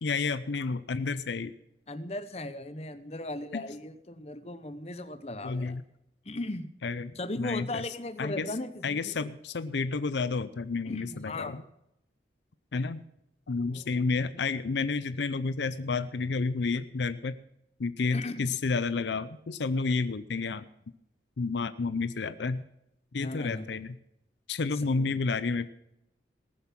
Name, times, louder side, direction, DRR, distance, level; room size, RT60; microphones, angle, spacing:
voice 1, 0.0-1.5 3.5-3.6 5.4-5.8 6.8-7.8 8.2-8.5 8.8-11.6 12.7-13.0 13.5-17.3 17.8-20.7 21.4-22.6 23.1-23.9 24.5-25.7, left 4 dB, 80° left, 14 dB, 0.5 m, -30 dB
voice 2, 1.9-5.8 6.2-6.7 7.1-9.3 10.9-11.6 13.7-13.8 18.1-18.5 23.1-23.7 24.7-25.2, left 2 dB, 35° left, 10 dB, 0.9 m, -37 dB
19.0 x 7.0 x 5.9 m, 0.83 s
head